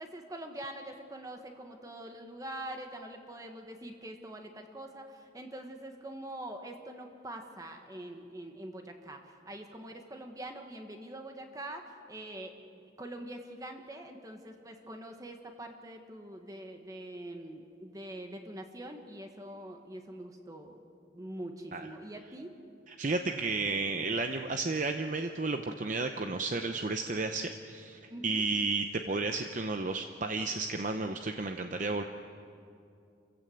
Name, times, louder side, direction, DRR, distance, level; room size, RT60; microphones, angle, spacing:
voice 1, 0.0-20.8 21.1-22.6 28.1-28.4, right 1 dB, 20° right, 4 dB, 1.3 m, -44 dB
voice 2, 23.0-32.0, right 3 dB, 40° right, 6 dB, 0.7 m, -32 dB
28.0 x 15.5 x 7.8 m, 2.5 s
head